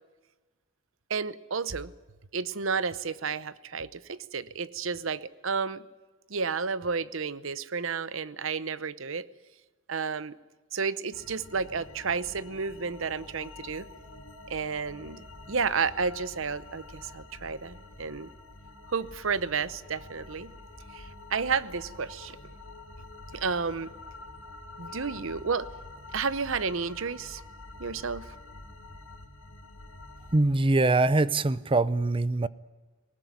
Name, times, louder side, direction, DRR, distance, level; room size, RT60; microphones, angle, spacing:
voice 1, 1.1-1.9 2.3-5.8 6.3-9.3 9.9-10.4 10.7-13.9 14.5-18.3 18.9-20.5 20.9-22.4 23.3-23.9 24.8-25.7 26.1-27.4 27.8-28.3, right 5 dB, 65° right, 0.8 m, -31 dB
sound 1, 11.1-30.4, left 2 dB, 65° left, 2.9 m, -47 dB
voice 2, 30.3-32.5, right 2 dB, 25° right, 0.6 m, -23 dB
19.5 x 19.0 x 9.6 m
head